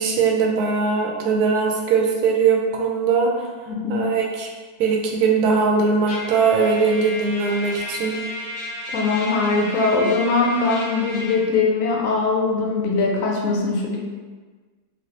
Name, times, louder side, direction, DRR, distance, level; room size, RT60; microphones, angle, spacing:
voice 1, 0.0-3.5 3.9-4.5 4.8-8.1, right 5 dB, 85° right, 0 dB, 1.1 m, -20 dB
voice 2, 3.7-4.1 8.9-14.0, left 3 dB, 70° left, -1 dB, 0.9 m, -21 dB
Trumpet, 6.1-11.4, left 1 dB, 45° left, 0.5 m, -33 dB
3.1 x 2.7 x 2.8 m, 1.4 s
omnidirectional pair, 1.6 m